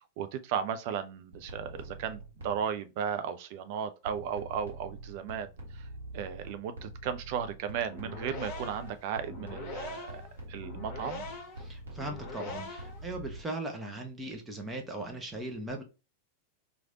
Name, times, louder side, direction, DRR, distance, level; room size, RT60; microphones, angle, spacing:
voice 1, 0.2-5.5 5.7-5.8 6.1-10.2 10.5-11.2, right 8 dB, 45° right, 0.4 m, -35 dB
sound 1, 1.3-2.7 4.0-13.4, right 1 dB, 70° right, 1.0 m, -45 dB
sound 2, 7.9-13.1, left 3 dB, 45° left, 0.9 m, -43 dB
voice 2, 11.6-15.8, right 2 dB, 10° right, 1.0 m, -38 dB
3.1 x 2.5 x 2.7 m
figure-of-eight pair, 90°, 0 cm